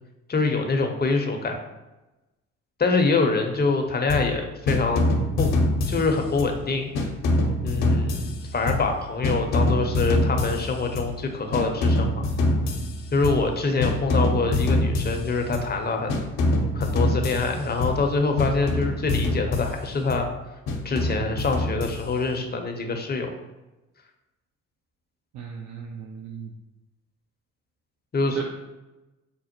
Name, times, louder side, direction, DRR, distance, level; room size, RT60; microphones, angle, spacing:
voice 1, 0.3-1.6 2.8-5.1 5.4-5.5 5.9-6.9 7.6-12.2 13.1-16.1 16.7-20.3 20.8-23.3 28.1-28.4, left 3 dB, 25° left, 4 dB, 0.6 m, -25 dB
sound 1, 4.1-4.4 4.7-6.6 6.9-9.0 9.2-11.2 11.5-13.5 13.8-15.8 16.1-18.1 18.4-20.3 20.7-22.3, left 1 dB, 65° left, 0.7 m, -25 dB
voice 2, 25.3-26.5 28.3-28.4, right 7 dB, 50° right, 1 dB, 0.5 m, -36 dB
5.1 x 2.0 x 2.8 m, 1.0 s
hypercardioid pair, 50°, 36 cm